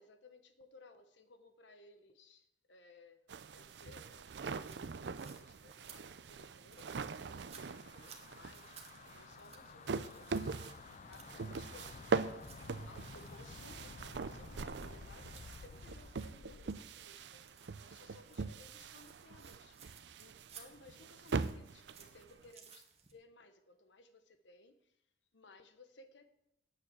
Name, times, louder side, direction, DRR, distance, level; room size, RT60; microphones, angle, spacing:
voice 1, 0.0-10.6 11.0-12.2 12.8-25.0 25.3-26.3, left 2 dB, 90° left, 8 dB, 1.1 m, -61 dB
sound 1, 3.3-22.5, right 4 dB, 70° right, 0.5 m, -42 dB
sound 2, 4.5-23.1, right 7 dB, 35° right, 1.4 m, -61 dB
sound 3, 7.1-16.8, left 4 dB, 45° left, 0.4 m, -53 dB
8.8 x 7.1 x 7.5 m, 0.81 s
head